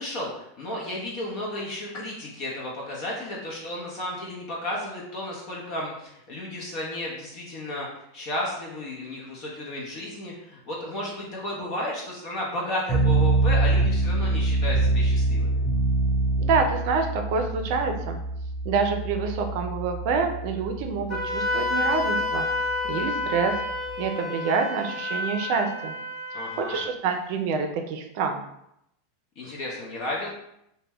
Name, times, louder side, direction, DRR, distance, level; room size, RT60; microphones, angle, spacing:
voice 1, 0.0-15.6 26.3-26.8 29.4-30.3, left 1 dB, 55° left, -3 dB, 0.7 m, -33 dB
sound 1, 12.9-24.0, right 2 dB, 5° left, 0.7 m, -25 dB
voice 2, 16.4-18.2 18.6-22.5 22.9-23.6 24.0-25.9 26.6-28.4, right 5 dB, 60° right, 5 dB, 0.4 m, -27 dB
Wind instrument woodwind instrument, 21.1-26.9, left 2 dB, 30° left, 1.0 m, -29 dB
2.1 x 2.1 x 3.4 m, 0.79 s
hypercardioid pair, 100°, 0 cm